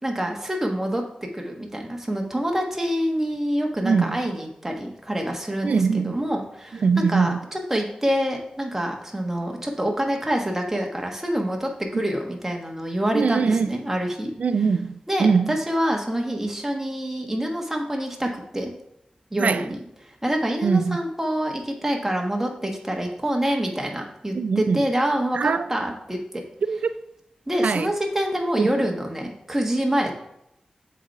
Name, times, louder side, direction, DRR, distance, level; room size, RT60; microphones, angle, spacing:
voice 1, 0.0-1.0 1.3-14.3 15.1-18.7 19.3-26.4 27.5-30.1, equal, 15° right, 1.4 m, -26 dB
voice 2, 3.8-4.2 5.6-6.2 6.8-7.4 13.1-13.7 14.4-15.6 19.4-19.7 20.6-21.0 24.3-24.8 25.3-25.7 26.6-26.9 27.6-27.9 28.6-28.7, right 5 dB, 80° right, 0.4 m, -22 dB
7.3 x 4.2 x 4.6 m
wide cardioid pair, 95°, 2 cm